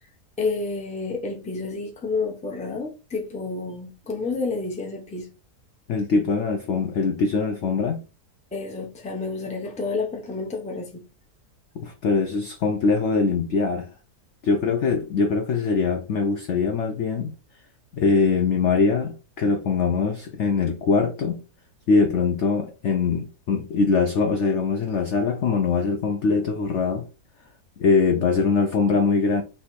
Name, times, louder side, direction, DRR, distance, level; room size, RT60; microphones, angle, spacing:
voice 1, 0.4-5.3 8.5-11.0, left 3 dB, 5° left, 0.5 m, -30 dB
voice 2, 5.9-8.0 11.8-13.9 14.4-17.3 17.9-21.4 21.9-27.0 27.8-29.4, left 4 dB, 70° left, 0.7 m, -22 dB
3.4 x 2.8 x 4.4 m
omnidirectional pair, 1.7 m